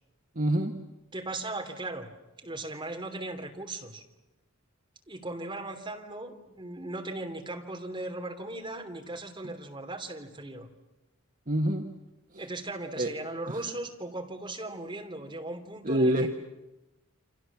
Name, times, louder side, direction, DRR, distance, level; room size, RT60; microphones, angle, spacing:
voice 1, 0.3-0.7 11.5-11.8 12.3-12.4 13.0-13.1 13.5-13.6 15.8-16.3, right 1 dB, 40° right, 3 dB, 1.5 m, -26 dB
voice 2, 1.1-2.1 2.4-4.0 5.1-10.7 12.4-16.3, right 2 dB, 25° right, 3 dB, 3.2 m, -38 dB
29.5 x 26.0 x 7.3 m, 1.0 s
head